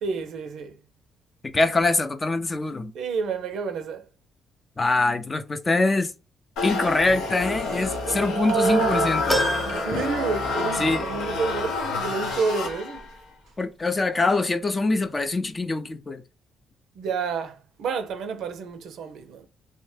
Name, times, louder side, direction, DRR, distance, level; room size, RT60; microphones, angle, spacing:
voice 1, 0.0-0.7 2.9-4.0 8.0-9.1 9.5-13.0 17.0-19.5, right 5 dB, 75° right, 0.5 m, -29 dB
voice 2, 1.4-2.9 4.8-6.1 6.6-9.4 9.9-10.0 10.8-11.0 13.6-16.2, left 3 dB, 30° left, 0.5 m, -24 dB
sound 1, 6.6-13.2, left 3 dB, 85° left, 0.8 m, -28 dB
sound 2, 9.3-10.9 11.4-11.5 12.7-12.8, equal, 5° left, 0.9 m, -29 dB
2.7 x 2.1 x 3.2 m
supercardioid pair, 65°, 0 cm